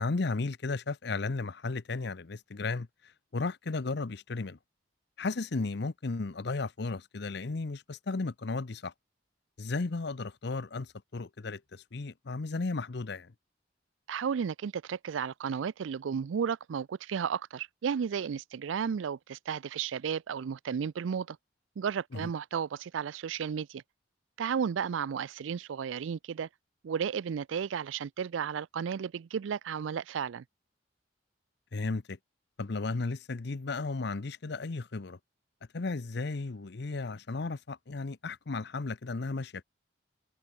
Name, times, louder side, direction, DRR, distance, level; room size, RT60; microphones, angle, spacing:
voice 1, 0.0-4.6 5.2-8.9 9.6-13.3 22.1-22.3 31.7-32.2 32.6-35.2 35.7-39.6, left 3 dB, 60° left, 0.7 m, -34 dB
voice 2, 14.1-21.4 21.8-23.8 24.4-26.5 26.8-30.4, right 7 dB, 80° right, 0.4 m, -33 dB
head